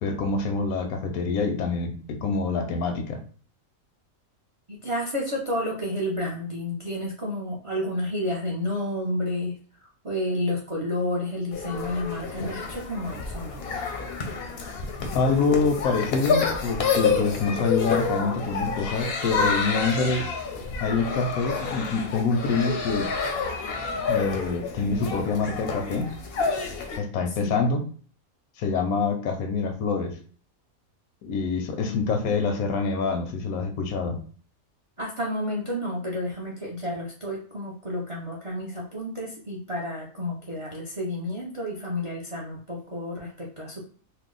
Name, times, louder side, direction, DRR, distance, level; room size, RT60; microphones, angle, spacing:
voice 1, 0.0-3.2 15.1-20.3 20.8-23.1 24.1-26.1 27.0-27.8 28.6-30.2 31.2-34.2, left 4 dB, 85° left, 5 dB, 1.1 m, -26 dB
voice 2, 4.7-9.6 10.0-13.6 27.4-27.6 31.8-32.2 35.0-43.8, left 1 dB, 60° right, -3 dB, 0.3 m, -30 dB
sound 1, 11.5-27.0, left 5 dB, 60° left, 0.6 m, -29 dB
2.7 x 2.0 x 3.7 m, 0.43 s
omnidirectional pair, 1.5 m